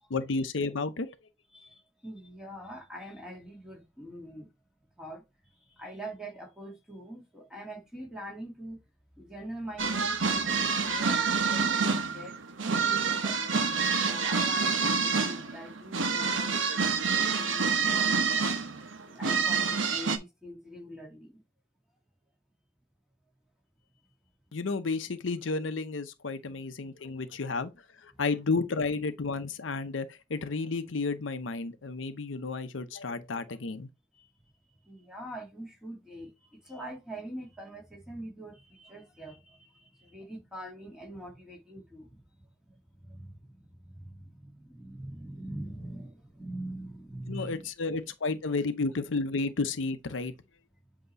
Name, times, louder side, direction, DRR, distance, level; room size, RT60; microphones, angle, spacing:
voice 1, 0.1-1.2 24.5-27.7 28.0-33.9 47.3-50.3, left 3 dB, 90° left, 0.7 m, -32 dB
voice 2, 1.5-4.5 5.0-8.8 9.2-13.4 14.0-18.4 19.1-21.4 26.5-26.6 34.1-34.3 34.8-42.2 42.6-48.1, right 1 dB, 5° right, 1.8 m, -44 dB
sound 1, 9.8-20.2, right 5 dB, 90° right, 0.9 m, -27 dB
7.9 x 2.9 x 4.0 m
head